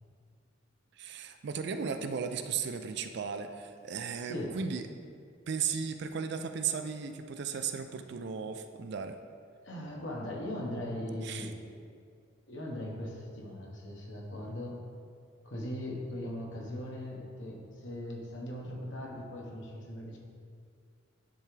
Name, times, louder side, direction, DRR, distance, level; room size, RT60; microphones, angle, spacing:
voice 1, 1.0-4.9 5.5-9.2 11.2-11.5, right 6 dB, 55° right, 8 dB, 0.4 m, -35 dB
voice 2, 4.2-4.6 9.6-11.6 12.5-14.8 15.4-20.2, left 1 dB, 65° left, -2 dB, 1.2 m, -39 dB
10.5 x 3.5 x 3.3 m, 2.2 s
head